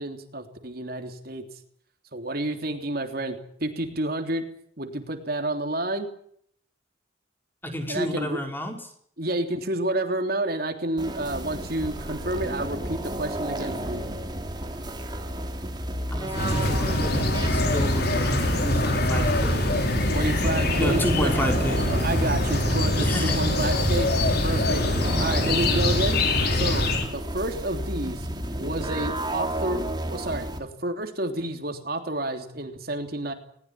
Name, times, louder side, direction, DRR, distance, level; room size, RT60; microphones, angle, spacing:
voice 1, 0.0-1.4 2.1-4.4 4.8-6.1 7.9-8.4 9.2-14.0 20.1-21.3 21.8-24.1 24.4-24.8 25.2-26.2 26.5-28.3 28.6-29.8 30.1-33.3, right 1 dB, 50° right, 5 dB, 3.2 m, -30 dB
voice 2, 7.6-8.9 16.1-19.6 20.8-21.9 22.9-23.4, equal, 10° left, 3 dB, 4.9 m, -31 dB
sound 1, 11.0-30.6, right 1 dB, 20° right, 3.2 m, -32 dB
sound 2, 16.3-27.1, left 1 dB, 50° left, 5.2 m, -24 dB
20.5 x 20.0 x 8.9 m, 0.64 s
head